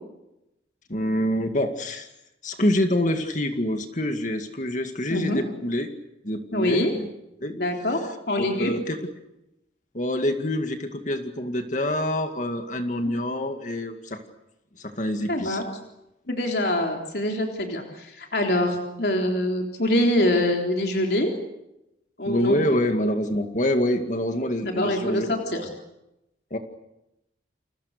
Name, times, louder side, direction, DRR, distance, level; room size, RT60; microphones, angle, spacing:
voice 1, 0.9-2.1 2.4-5.9 6.2-7.1 7.4-7.6 8.4-9.0 9.9-14.2 14.8-15.6 22.2-25.3 26.5-26.6, left 1 dB, 40° left, 6 dB, 2.1 m, -26 dB
voice 2, 5.1-5.4 6.5-6.9 7.5-8.0 8.3-8.7 13.0-13.1 15.3-15.6 16.3-21.3 22.2-22.6 24.6-25.7, left 1 dB, 60° left, 2 dB, 3.7 m, -24 dB
30.0 x 28.0 x 6.8 m, 0.89 s
head